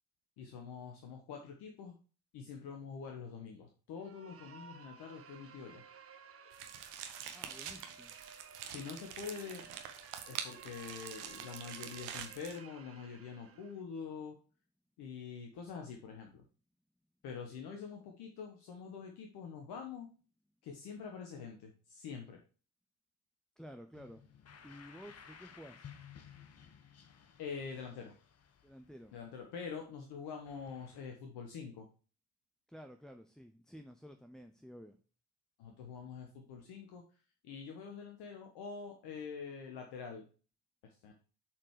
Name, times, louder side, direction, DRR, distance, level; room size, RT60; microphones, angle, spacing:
voice 1, 0.4-2.0 2.3-5.8 8.7-9.6 10.3-14.4 15.0-16.4 17.2-20.1 20.6-22.4 27.4-28.1 29.1-31.9 35.6-37.0 37.4-40.3 40.8-41.1, left 6 dB, 60° left, 3 dB, 1.2 m, -45 dB
sound 1, 4.0-13.8, right 6 dB, 30° right, 0.9 m, -56 dB
sound 2, 6.5-12.6, right 9 dB, 60° right, 1.1 m, -46 dB
voice 2, 7.3-8.2 23.6-24.2 24.6-25.9 28.6-29.2 32.7-35.0, equal, ahead, 6 dB, 0.5 m, -52 dB
sound 3, 23.9-29.9 30.4-31.0, left 7 dB, 35° left, 1.0 m, -57 dB
7.3 x 4.5 x 4.8 m, 0.37 s
figure-of-eight pair, 45°, 44 cm